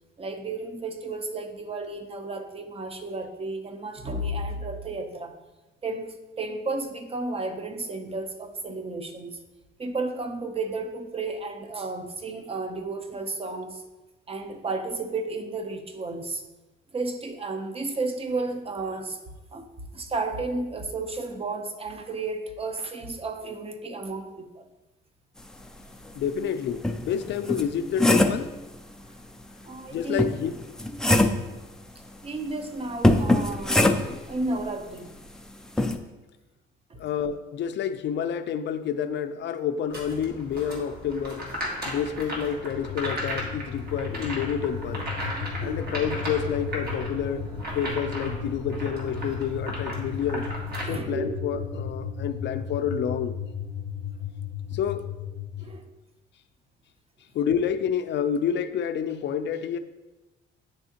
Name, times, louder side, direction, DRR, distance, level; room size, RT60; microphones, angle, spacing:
voice 1, 0.2-5.3 5.8-9.4 9.8-13.8 14.3-16.4 16.9-19.6 19.9-24.6 29.6-30.3 32.2-35.1 36.9-37.0 45.6-45.8 50.9-51.3 55.6-55.9, right 3 dB, 30° right, 7 dB, 0.7 m, -33 dB
voice 2, 26.1-28.5 29.9-30.5 37.0-41.5 41.8-45.0 45.6-47.5 47.7-50.5 50.8-53.4 54.7-55.3 57.3-59.8, left 8 dB, 65° left, 9 dB, 0.5 m, -29 dB
sound 1, 26.2-26.3 26.8-28.5 30.2-31.5 33.0-34.3 35.8-36.0, left 1 dB, 5° left, 0.4 m, -22 dB
sound 2, 39.9-50.8, equal, 50° right, 1.6 m, -36 dB
sound 3, 42.5-55.7, left 5 dB, 80° right, 2.0 m, -35 dB
9.4 x 3.5 x 2.8 m, 1.1 s
cardioid pair, 90°, 20 cm